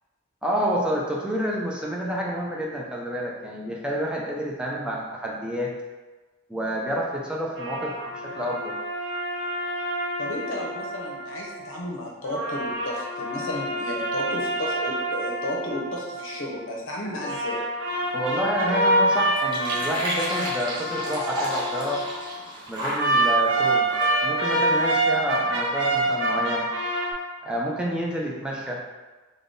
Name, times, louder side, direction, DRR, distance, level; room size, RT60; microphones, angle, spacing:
voice 1, 0.4-5.7 6.5-8.7 18.1-22.0 22.7-23.9 24.2-26.7 27.4-28.8, equal, 5° right, -3 dB, 0.5 m, -29 dB
sound 1, 7.6-11.7 12.2-16.7 17.2-22.3 22.9-27.1, right 1 dB, 65° right, 0.6 m, -26 dB
voice 2, 10.2-17.6, left 1 dB, 75° left, -2 dB, 0.8 m, -33 dB
sound 2, 17.9-25.0, right 1 dB, 25° right, 0.9 m, -34 dB
3.5 x 2.3 x 3.8 m, 1.2 s
head